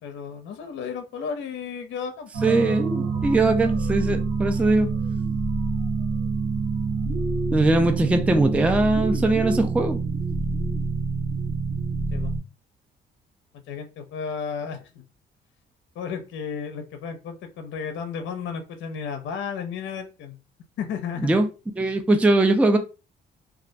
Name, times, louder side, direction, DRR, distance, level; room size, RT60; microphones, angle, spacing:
voice 1, 0.0-2.3 2.6-2.8 12.1-12.4 13.7-15.0 16.0-20.4 20.8-21.4, left 6 dB, 70° left, 0.5 m, -33 dB
sound 1, 2.3-12.4, right 4 dB, 85° right, 0.8 m, -26 dB
voice 2, 2.4-4.9 7.5-10.0 21.2-21.5 21.8-22.8, right 2 dB, 5° right, 0.3 m, -21 dB
2.3 x 2.1 x 2.6 m
cardioid pair, 90°, 20 cm